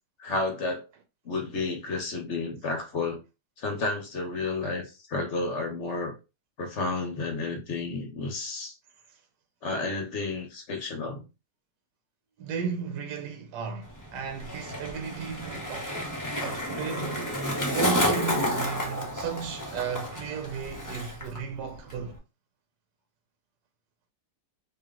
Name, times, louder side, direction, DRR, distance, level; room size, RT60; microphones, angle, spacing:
voice 1, 0.2-0.8 1.2-3.2 3.6-6.1 6.6-8.7 9.6-11.2, left 3 dB, 45° left, 1.3 m, -31 dB
voice 2, 12.4-17.4 17.7-22.2, right 6 dB, 75° right, 1.3 m, -35 dB
Skateboard, 13.8-21.4 21.6-22.2, equal, 15° left, 0.7 m, -31 dB
3.2 x 2.9 x 3.7 m
omnidirectional pair, 1.9 m